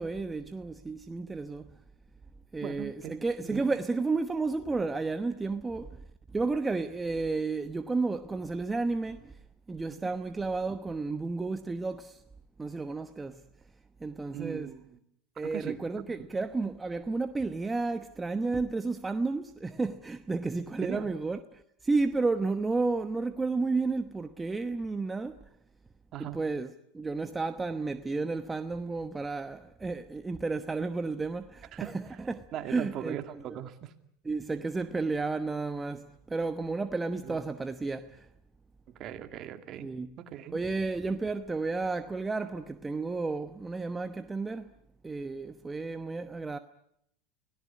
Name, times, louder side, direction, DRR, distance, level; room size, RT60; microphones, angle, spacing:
voice 1, 0.0-1.7 2.5-6.0 6.3-9.3 9.7-12.2 12.6-13.4 14.0-14.7 15.4-25.4 26.2-33.4 34.2-38.3 39.8-40.2 40.5-44.7 45.0-46.6, right 3 dB, 15° right, 1.0 m, -32 dB
voice 2, 2.6-3.1 3.4-3.7 10.0-10.1 14.3-15.0 15.4-15.8 20.8-21.1 26.1-26.4 31.7-31.9 32.5-33.9 37.2-37.4 39.0-39.9 40.2-40.6, right 11 dB, 45° right, 2.4 m, -39 dB
25.0 x 17.5 x 9.7 m
supercardioid pair, 105°, 0 cm